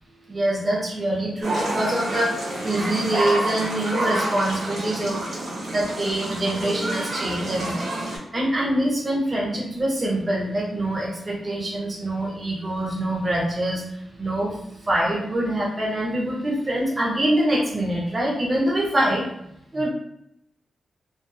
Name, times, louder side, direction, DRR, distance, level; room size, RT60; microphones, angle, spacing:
voice 1, 0.3-5.3 5.7-19.2 19.7-19.9, right 1 dB, 25° right, -3 dB, 0.6 m, -25 dB
sound 1, 1.4-8.2, right 1 dB, 70° right, 1.0 m, -28 dB
2.6 x 2.3 x 2.2 m, 0.76 s
wide cardioid pair, 170°, 0 cm